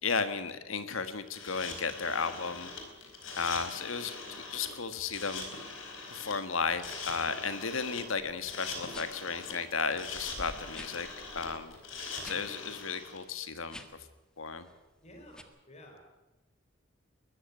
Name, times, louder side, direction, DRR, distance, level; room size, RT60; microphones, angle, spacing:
voice 1, 0.0-2.7 3.4-5.5 6.1-11.1 11.3-11.7 12.2-13.8 14.4-14.6, left 5 dB, 90° left, 10 dB, 1.6 m, -34 dB
sound 1, 1.3-13.2, left 4 dB, 70° left, 4.5 m, -42 dB
sound 2, 8.2-8.4 8.9-9.3 9.8-9.9 10.1-12.4 12.7-12.9 13.6-14.1 14.5-14.8 15.3-15.4, equal, 5° left, 1.6 m, -48 dB
voice 2, 15.0-16.0, left 1 dB, 35° left, 3 dB, 4.4 m, -52 dB
21.0 x 14.5 x 9.6 m, 1.1 s
head